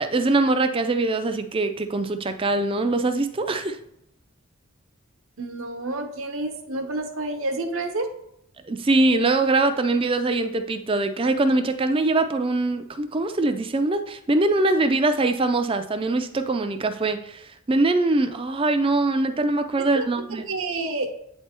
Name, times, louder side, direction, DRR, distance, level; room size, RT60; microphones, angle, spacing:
voice 1, 0.0-3.8 8.6-20.5, right 2 dB, 25° right, 9 dB, 0.4 m, -23 dB
voice 2, 5.4-8.1 19.9-20.1 20.5-21.1, right 2 dB, 70° right, 4 dB, 1.0 m, -29 dB
8.3 x 3.4 x 4.3 m, 0.74 s
head